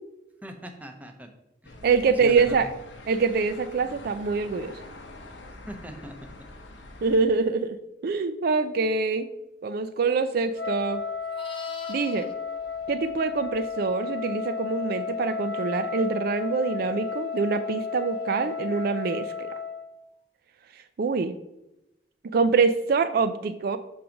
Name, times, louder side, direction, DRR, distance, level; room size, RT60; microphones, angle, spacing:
voice 1, 0.4-1.3 1.6-2.6 5.7-6.2, equal, 10° right, 4 dB, 0.7 m, -41 dB
sound 1, 1.6-7.2, left 2 dB, 90° left, 0.8 m, -45 dB
voice 2, 1.8-2.7 3.1-4.7 7.0-7.8 8.0-9.3 9.6-11.0 11.9-12.3 12.9-19.5 21.0-21.3 22.3-23.8, right 4 dB, 55° right, 10 dB, 0.4 m, -25 dB
Wind instrument woodwind instrument, 10.5-19.9, left 6 dB, 65° left, 1.0 m, -33 dB
Livestock farm animals working animals, 10.6-13.9 18.3-18.5, left 5 dB, 30° left, 0.6 m, -47 dB
6.3 x 3.8 x 5.8 m, 0.93 s
head